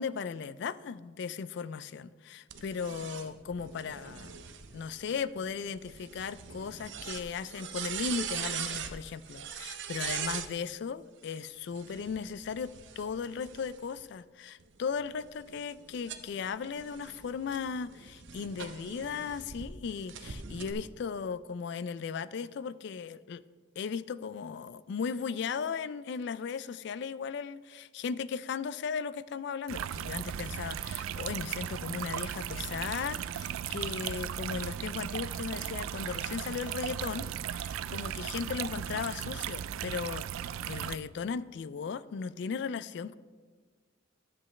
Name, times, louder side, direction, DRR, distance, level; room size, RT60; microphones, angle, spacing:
voice 1, 0.0-4.4 4.7-23.4 23.8-43.1, left 6 dB, 60° left, 16 dB, 0.3 m, -37 dB
sound 1, 2.5-10.5 11.6-14.0 14.6-19.7 20.1-20.7, right 8 dB, 65° right, 0.7 m, -41 dB
sound 2, 29.7-41.0, right 9 dB, 90° right, 0.3 m, -36 dB
13.0 x 7.7 x 3.2 m, 1.5 s
head